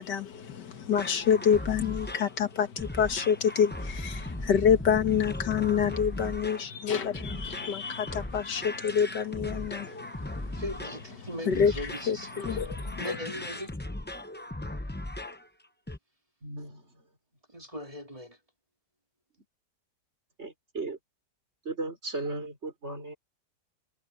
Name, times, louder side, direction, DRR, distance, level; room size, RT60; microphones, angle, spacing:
voice 1, 0.0-10.6 11.5-11.7 12.1-13.2, left 7 dB, 80° left, 2.1 m, -27 dB
sound 1, 0.9-15.5 15.9-16.0, left 1 dB, 10° left, 0.5 m, -38 dB
voice 2, 10.5-12.6 13.0-13.8 17.5-18.4, equal, 20° right, 2.4 m, -39 dB
voice 3, 16.4-16.8 20.4-21.0 21.6-23.2, right 2 dB, 40° right, 4.2 m, -36 dB
omnidirectional pair, 1.8 m